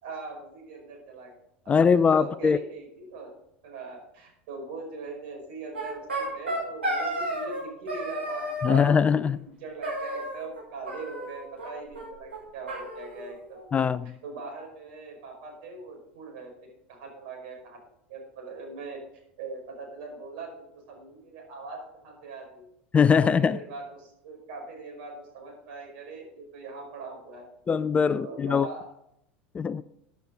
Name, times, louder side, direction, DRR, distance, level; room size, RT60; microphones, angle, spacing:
voice 1, 0.0-1.3 2.0-3.3 3.6-13.6 14.2-16.5 16.9-17.8 18.1-19.0 19.4-22.7 23.2-27.5 28.1-28.9, right 3 dB, 60° right, 5.3 m, -41 dB
voice 2, 1.7-2.6 8.6-9.4 13.7-14.1 22.9-23.6 27.7-28.7 29.5-29.8, left 6 dB, 20° left, 0.4 m, -21 dB
sound 1, 5.7-7.6 7.9-8.9 9.8-10.6 10.9-11.7 11.9-12.0 12.3-12.4 12.7-13.7, right 1 dB, 80° right, 6.0 m, -32 dB
14.5 x 9.6 x 3.8 m
figure-of-eight pair, 80°, 6 cm